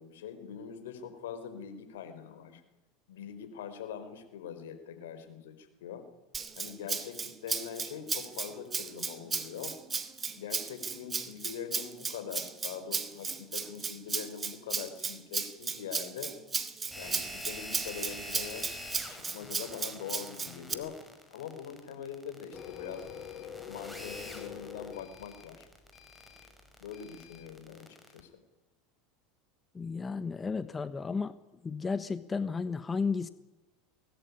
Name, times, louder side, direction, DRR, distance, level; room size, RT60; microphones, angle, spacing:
voice 1, 0.0-2.6 3.1-6.1 6.5-9.8 10.3-16.3 17.0-18.7 19.1-21.0 21.3-23.1 23.6-25.7 26.8-28.4, left 8 dB, 80° left, 10 dB, 4.7 m, -43 dB
Rattle (instrument), 6.3-20.7, right 5 dB, 25° right, 2.5 m, -35 dB
sound 1, 16.9-28.2, equal, ahead, 5.9 m, -46 dB
Printer, 22.5-27.5, left 8 dB, 40° left, 4.9 m, -46 dB
voice 2, 29.7-31.4 31.6-33.3, left 5 dB, 20° left, 13 dB, 1.3 m, -33 dB
23.5 x 19.5 x 9.8 m, 1.0 s
hypercardioid pair, 90°, 0 cm